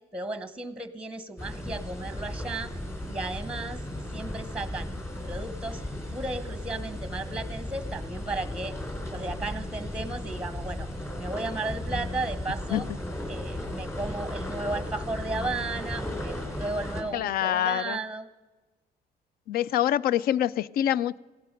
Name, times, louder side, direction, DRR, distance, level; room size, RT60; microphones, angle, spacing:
voice 1, 0.1-2.7 3.1-3.8 4.1-4.9 5.2-5.8 6.1-8.8 9.1-10.9 11.2-12.9 13.3-18.3, right 2 dB, 5° right, 13 dB, 0.9 m, -34 dB
sound 1, 1.4-17.0, left 1 dB, 15° left, 3.1 m, -35 dB
voice 2, 17.1-18.0 19.5-21.2, left 11 dB, 60° left, 22 dB, 0.4 m, -25 dB
16.0 x 11.5 x 5.2 m, 1.2 s
cardioid pair, 110°, 17 cm